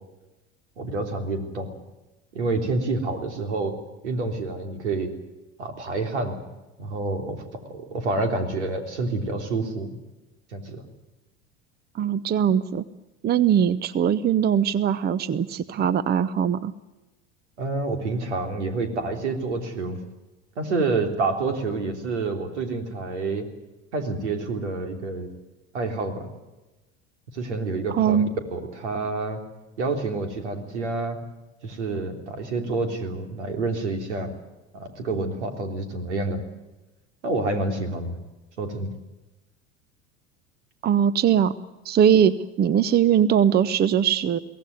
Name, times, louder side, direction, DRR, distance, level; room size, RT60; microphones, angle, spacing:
voice 1, 0.8-1.7 2.3-3.7 4.0-5.1 5.6-6.4 6.8-9.9 10.5-10.9 17.6-20.0 20.6-23.4 23.9-25.3 25.7-26.3 27.3-28.2 28.5-29.4 29.8-31.2 31.6-34.3 34.7-36.4 37.2-38.2 38.6-38.9, right 3 dB, 80° right, 6 dB, 3.4 m, -28 dB
voice 2, 11.9-12.8 13.2-16.7 27.9-28.3 40.8-41.5 41.8-44.4, right 8 dB, 30° right, 18 dB, 0.8 m, -21 dB
23.0 x 17.0 x 9.5 m, 1.1 s
hypercardioid pair, 75°, 34 cm